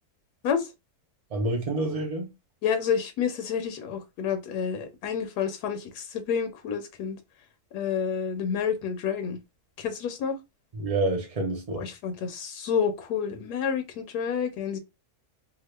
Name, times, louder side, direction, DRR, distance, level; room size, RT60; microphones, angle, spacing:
voice 1, 1.3-2.3 10.7-11.9, right 2 dB, 65° right, 0.3 m, -28 dB
voice 2, 2.6-7.2 7.7-9.4 9.8-10.4 11.8-14.8, left 7 dB, 85° left, 1.2 m, -29 dB
2.8 x 2.5 x 3.1 m
omnidirectional pair, 1.7 m